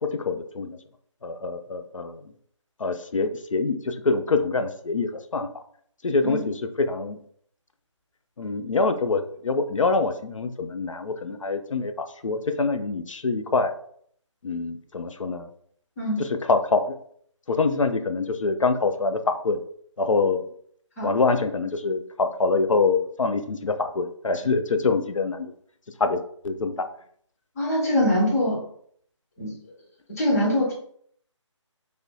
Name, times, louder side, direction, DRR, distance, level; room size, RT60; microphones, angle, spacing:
voice 1, 0.0-0.8 1.2-2.2 2.8-5.5 6.0-7.2 8.4-13.7 14.4-15.5 16.2-17.0 17.5-19.6 20.0-20.4 21.0-25.5 26.0-26.9, left 3 dB, 80° left, 8 dB, 0.4 m, -25 dB
voice 2, 27.6-28.6 29.4-29.5 30.2-30.7, left 1 dB, 30° left, -4 dB, 1.1 m, -23 dB
3.3 x 2.6 x 2.3 m, 0.62 s
figure-of-eight pair, 155°, 16 cm